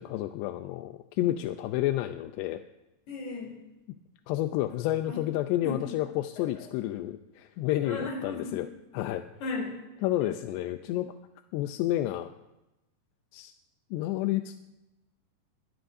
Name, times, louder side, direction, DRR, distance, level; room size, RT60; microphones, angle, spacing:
voice 1, 0.0-2.6 4.3-8.7 8.9-9.3 10.0-11.1 11.5-12.3 13.3-13.5 13.9-14.6, left 14 dB, 80° left, 7 dB, 2.6 m, -30 dB
voice 2, 3.1-3.6 5.1-5.2 5.6-5.9 6.4-6.7 7.7-8.6 9.4-10.6, left 3 dB, 65° left, -2 dB, 5.6 m, -37 dB
21.5 x 17.0 x 2.7 m, 0.97 s
omnidirectional pair, 5.0 m